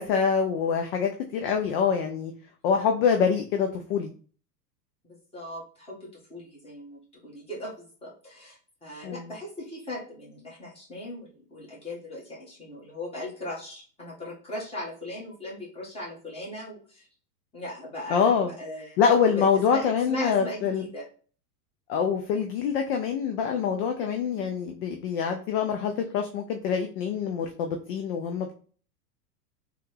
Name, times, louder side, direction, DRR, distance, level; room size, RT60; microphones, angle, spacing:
voice 1, 0.0-2.3 2.6-4.1 9.0-9.3 18.1-18.5 19.0-20.8 21.9-28.5, left 6 dB, 40° left, 3 dB, 0.4 m, -25 dB
voice 2, 5.3-17.1 17.5-19.0 19.3-21.0, left 1 dB, 10° left, -6 dB, 1.5 m, -39 dB
3.3 x 2.3 x 3.2 m, 0.41 s
hypercardioid pair, 105°, 48 cm